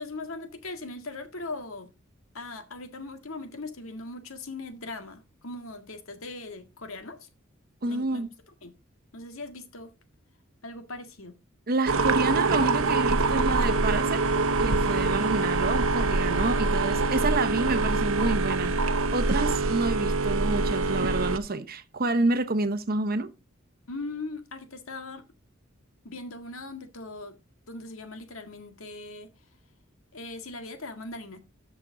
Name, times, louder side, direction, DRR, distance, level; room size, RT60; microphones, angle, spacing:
voice 1, 0.0-1.9 2.3-7.3 7.9-8.2 8.6-8.7 9.1-9.9 10.6-11.4 16.4-17.0 23.9-25.3 26.0-27.4 27.7-29.3 30.1-31.4, left 2 dB, 80° left, 1.8 m, -40 dB
voice 2, 7.8-8.3 11.7-14.2 14.6-18.7 19.1-23.3, right 3 dB, 45° right, 1.0 m, -28 dB
sound 1, 11.9-21.4, right 3 dB, 75° right, 0.9 m, -25 dB
13.0 x 6.2 x 3.8 m
head